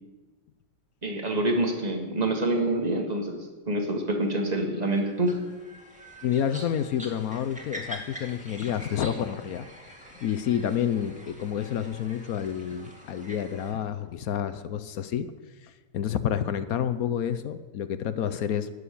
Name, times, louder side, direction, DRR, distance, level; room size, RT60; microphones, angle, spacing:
voice 1, 1.0-3.4 3.7-5.4, right 1 dB, 25° right, 2 dB, 1.9 m, -26 dB
sound 1, 4.9-13.7, equal, 5° right, 2.0 m, -45 dB
voice 2, 6.2-9.7 10.2-15.3 15.6-18.7, left 9 dB, 70° left, 12 dB, 1.1 m, -29 dB
12.5 x 6.8 x 9.9 m, 1.3 s
omnidirectional pair, 1.7 m